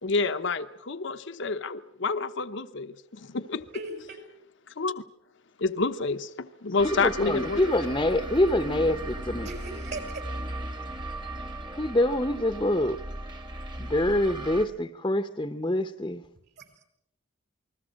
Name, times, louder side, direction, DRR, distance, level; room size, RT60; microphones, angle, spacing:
voice 1, 0.0-3.6 4.7-5.0 5.6-7.8, left 4 dB, 60° left, 10 dB, 0.9 m, -29 dB
voice 2, 3.7-4.2 9.4-10.2 16.6-16.7, right 3 dB, 55° right, 6 dB, 6.2 m, -38 dB
sound 1, 6.8-14.6, right 1 dB, 25° right, 1.6 m, -37 dB
voice 3, 6.9-9.5 11.8-13.0 13.8-16.2, left 1 dB, 20° left, 8 dB, 0.9 m, -25 dB
28.5 x 20.5 x 6.4 m, 0.79 s
head